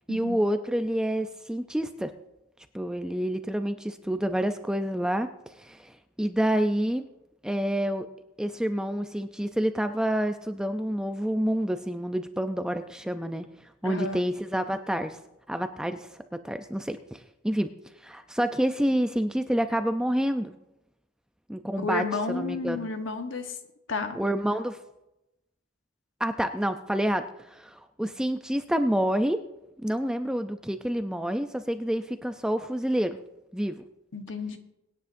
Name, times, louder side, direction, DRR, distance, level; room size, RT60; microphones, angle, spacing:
voice 1, 0.1-2.1 2.7-5.3 5.6-7.0 7.4-8.1 8.4-13.5 13.8-15.2 15.5-16.1 16.4-17.7 18.0-20.5 21.5-22.9 24.1-24.8 26.2-29.4 29.8-33.2 33.5-33.7, equal, 5° right, 8 dB, 0.4 m, -28 dB
voice 2, 13.8-14.2 21.8-23.6 23.9-24.2 34.1-34.6, left 3 dB, 60° left, 6 dB, 1.2 m, -31 dB
23.0 x 10.0 x 2.6 m, 0.91 s
head